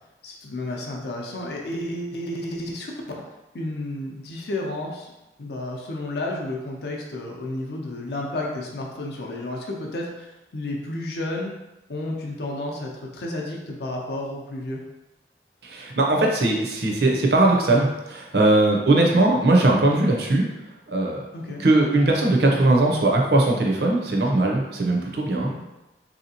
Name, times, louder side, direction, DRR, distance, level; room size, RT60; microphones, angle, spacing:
voice 1, 0.2-2.9 3.5-5.1 5.4-11.5 11.9-14.8 21.3-21.6 25.4-25.6, left 1 dB, 65° left, -1 dB, 0.5 m, -31 dB
voice 2, 15.6-20.5 20.9-21.3 21.6-25.5, right 2 dB, 65° right, 0 dB, 0.6 m, -20 dB
3.4 x 2.8 x 2.7 m, 1.0 s
head